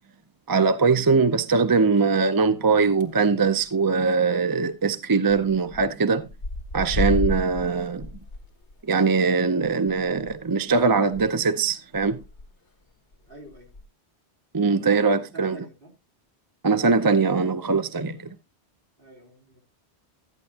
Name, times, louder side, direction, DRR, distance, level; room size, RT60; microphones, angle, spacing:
voice 1, 0.5-6.3 6.7-8.1 8.9-12.2 14.5-15.6 16.6-18.4, right 4 dB, 25° right, 0.5 m, -21 dB
sound 1, 2.8-3.3 3.6-3.9 4.2-4.3 4.4-4.5 5.3-5.9 6.1-11.2 11.6-11.7 12.0-12.5 13.1-13.8, left 2 dB, 85° left, 1.7 m, -32 dB
voice 2, 13.3-13.7 15.2-15.9 19.0-19.6, right 1 dB, 55° right, 3.5 m, -45 dB
13.5 x 9.6 x 2.8 m
omnidirectional pair, 1.1 m